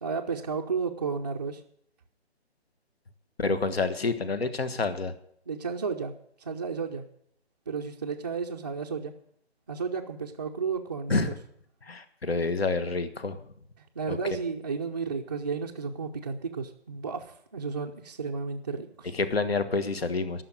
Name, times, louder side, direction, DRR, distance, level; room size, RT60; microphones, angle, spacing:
voice 1, 0.0-1.6 5.5-6.1 6.4-7.1 7.7-9.1 9.7-11.3 13.8-19.1, right 5 dB, 20° right, -3 dB, 0.5 m, -33 dB
voice 2, 3.4-5.1 11.1-11.3 11.8-13.4 14.1-14.2 19.1-20.4, left 3 dB, 65° left, 12 dB, 1.5 m, -28 dB
13.5 x 6.2 x 9.5 m, 0.68 s
figure-of-eight pair, 150°, 32 cm